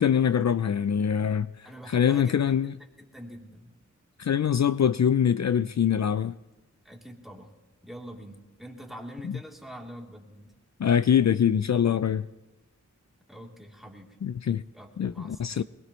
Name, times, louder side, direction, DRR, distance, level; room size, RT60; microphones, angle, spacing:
voice 1, 0.0-2.7 4.2-6.3 9.2-9.4 10.8-12.3 14.2-14.6 15.0-15.6, left 8 dB, 60° left, 0.4 m, -24 dB
voice 2, 1.6-2.4 3.0-3.7 6.8-7.5 7.8-10.5 13.3-14.1 14.7-15.6, equal, ahead, 3.3 m, -44 dB
22.0 x 20.5 x 3.2 m
wide cardioid pair, 45°, 31 cm